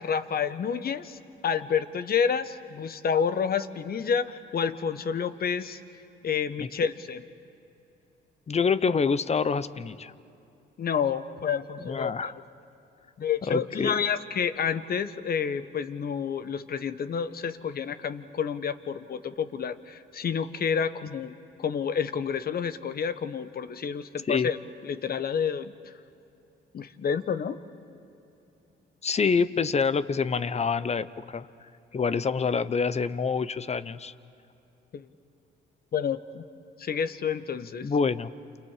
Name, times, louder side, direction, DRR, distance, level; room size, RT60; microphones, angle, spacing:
voice 1, 0.0-5.8 6.2-7.2 10.8-12.3 13.2-24.6 24.8-25.7 26.7-27.6 34.9-35.1 35.9-36.4 36.8-37.9, left 7 dB, 50° left, 12 dB, 1.1 m, -29 dB
voice 2, 8.5-10.1 11.8-12.3 13.5-13.9 24.3-24.5 29.0-31.5 31.9-34.1 37.8-38.3, left 5 dB, 35° left, 15 dB, 0.8 m, -26 dB
29.0 x 28.5 x 4.9 m, 2.8 s
cardioid pair, 90°, 20 cm